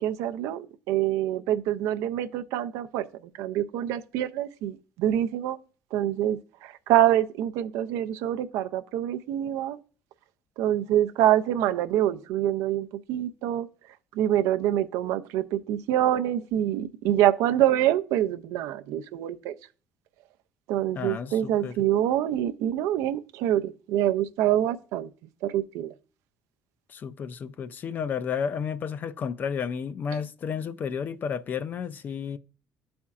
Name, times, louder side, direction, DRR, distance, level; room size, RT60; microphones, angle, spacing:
voice 1, 0.0-3.1 3.4-5.6 5.9-9.8 10.6-13.7 14.1-19.5 20.7-25.1 25.4-25.9 30.1-30.2, right 12 dB, 85° right, 0.4 m, -26 dB
voice 2, 20.9-21.7 26.9-32.4, left 7 dB, 35° left, 0.3 m, -32 dB
12.0 x 4.3 x 2.4 m
cardioid pair, 125°, 5 cm